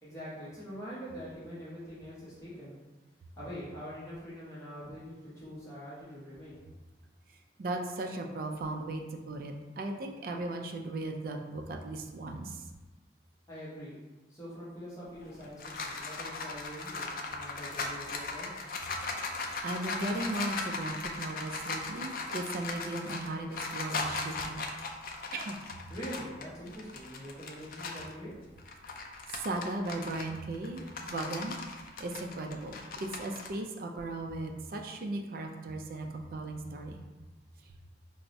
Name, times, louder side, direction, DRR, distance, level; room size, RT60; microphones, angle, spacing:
voice 1, 0.0-2.8 3.4-6.6 13.5-14.0 14.3-18.5 25.9-28.3, equal, 15° left, -10 dB, 0.8 m, -44 dB
voice 2, 7.6-12.6 19.1-24.7 25.3-25.6 29.3-31.6 32.0-36.9, right 2 dB, 50° right, 3 dB, 0.3 m, -37 dB
sound 1, 15.2-28.1 28.6-33.5, left 3 dB, 50° left, 0.3 m, -38 dB
4.4 x 2.0 x 2.6 m, 1.2 s
head